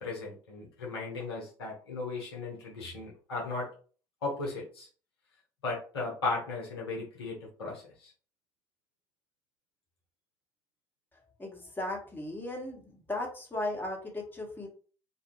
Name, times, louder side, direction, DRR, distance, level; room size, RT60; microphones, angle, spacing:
voice 1, 0.0-3.7 4.2-4.9 5.6-8.1, left 3 dB, 80° left, -2 dB, 0.8 m, -36 dB
voice 2, 11.4-14.7, left 1 dB, 15° left, -1 dB, 1.2 m, -36 dB
2.5 x 2.5 x 2.9 m, 0.39 s
figure-of-eight pair, 50°, 13 cm